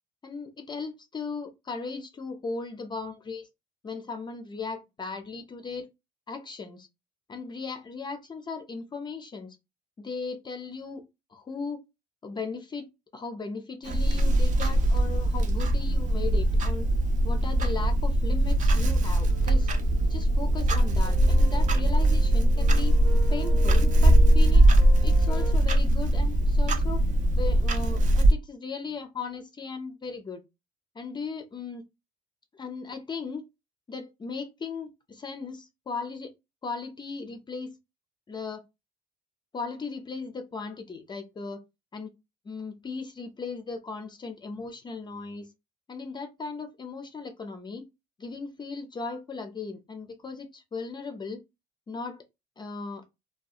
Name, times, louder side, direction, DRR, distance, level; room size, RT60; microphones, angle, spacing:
voice 1, 0.2-3.5 3.8-5.9 6.3-6.9 7.3-9.6 10.0-11.0 11.3-11.8 12.2-12.9 13.1-16.9 17.2-19.7 20.1-22.9 23.3-24.7 25.0-27.0 27.4-30.4 31.0-31.8 32.5-33.4 33.9-36.3 36.6-37.7 38.3-38.6 39.5-41.6 41.9-42.1 42.5-45.5 45.9-47.9 48.2-51.4 51.9-52.2 52.6-53.0, left 4 dB, 25° left, 0.4 m, -37 dB
Clock, 13.9-28.3, right 1 dB, 50° right, 0.5 m, -21 dB
sound 1, 19.3-25.5, right 4 dB, 70° right, 1.1 m, -42 dB
2.6 x 2.3 x 2.4 m
cardioid pair, 110°, 17 cm